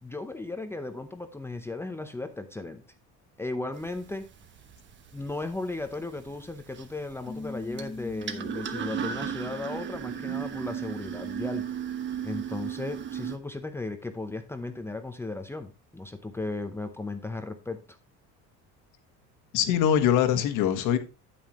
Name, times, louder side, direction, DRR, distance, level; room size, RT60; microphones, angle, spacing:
voice 1, 0.0-2.8 3.4-4.3 5.1-11.6 12.2-18.0, left 2 dB, 10° left, 0.7 m, -36 dB
sound 1, 3.7-13.4, right 8 dB, 35° right, 1.1 m, -36 dB
Piano, 7.3-12.4, left 2 dB, 90° left, 2.2 m, -43 dB
voice 2, 19.5-21.0, left 9 dB, 70° left, 1.5 m, -23 dB
9.4 x 8.9 x 3.0 m
cardioid pair, 150°, 32 cm